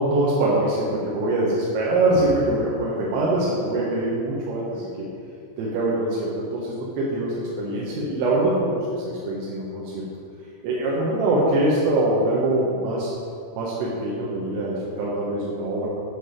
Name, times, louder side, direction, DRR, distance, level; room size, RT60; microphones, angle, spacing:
voice 1, 0.0-4.9 5.6-10.0 10.6-13.1 13.5-15.9, right 2 dB, 90° right, -6 dB, 4.0 m, -23 dB
13.5 x 6.4 x 5.1 m, 2.4 s
omnidirectional pair, 5.6 m